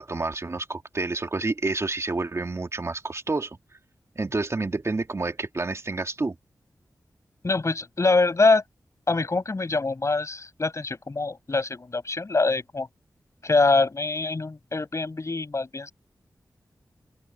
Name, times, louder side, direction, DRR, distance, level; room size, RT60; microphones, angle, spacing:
voice 1, 0.0-3.6 4.2-6.3, right 3 dB, 45° right, 2.7 m, -29 dB
voice 2, 7.4-8.6 9.1-12.9 13.4-15.9, left 3 dB, 45° left, 7.4 m, -24 dB
open air
cardioid pair, 55°, 7 cm